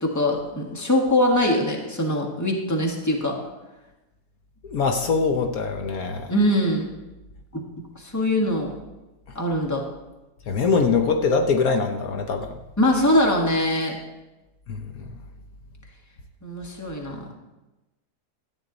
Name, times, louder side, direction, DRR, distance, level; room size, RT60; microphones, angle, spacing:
voice 1, 0.0-3.4 6.3-6.9 7.5-7.6 7.9-8.7 9.3-9.8 12.8-14.0 16.4-17.3, left 1 dB, 10° left, 0 dB, 1.4 m, -22 dB
voice 2, 4.6-6.3 10.5-12.5 14.7-15.0, left 4 dB, 70° left, 4 dB, 1.3 m, -23 dB
13.5 x 8.9 x 3.9 m, 1.1 s
omnidirectional pair, 1.7 m